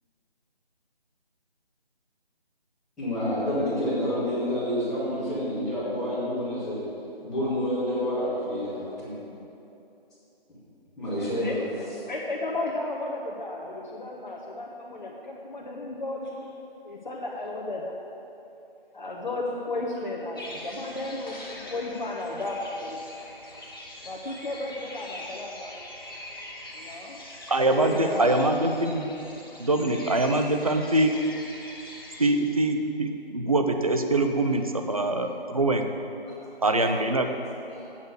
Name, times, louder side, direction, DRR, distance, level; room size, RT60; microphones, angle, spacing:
voice 1, 3.0-6.8 7.2-9.2 11.0-11.6 20.5-20.6 36.2-36.6 37.7-37.9, equal, ahead, -18 dB, 1.5 m, -29 dB
voice 2, 11.8-16.6 16.8-17.9 18.9-23.0 24.0-25.7 26.7-27.2 27.7-28.9, left 2 dB, 50° left, -3 dB, 1.1 m, -34 dB
sound 1, 20.4-32.3, left 1 dB, 25° left, 0.9 m, -43 dB
voice 3, 27.5-29.0 29.6-31.1 32.2-35.8 36.6-37.3, right 2 dB, 35° right, 5 dB, 0.6 m, -24 dB
8.2 x 6.4 x 7.9 m, 2.8 s
figure-of-eight pair, 170°, 30 cm